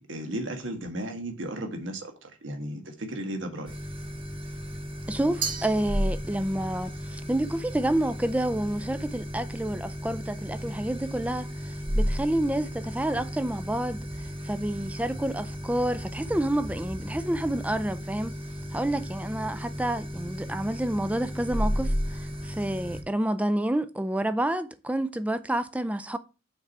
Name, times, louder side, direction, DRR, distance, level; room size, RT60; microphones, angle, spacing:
voice 1, 0.0-3.7, right 1 dB, 80° right, 1.4 m, -35 dB
sound 1, 3.7-23.0, equal, 30° right, 1.2 m, -34 dB
voice 2, 5.1-18.4 18.7-26.2, right 1 dB, 5° right, 0.4 m, -29 dB
Glass, 5.4-6.6, right 6 dB, 45° right, 1.4 m, -35 dB
5.9 x 4.7 x 5.5 m
head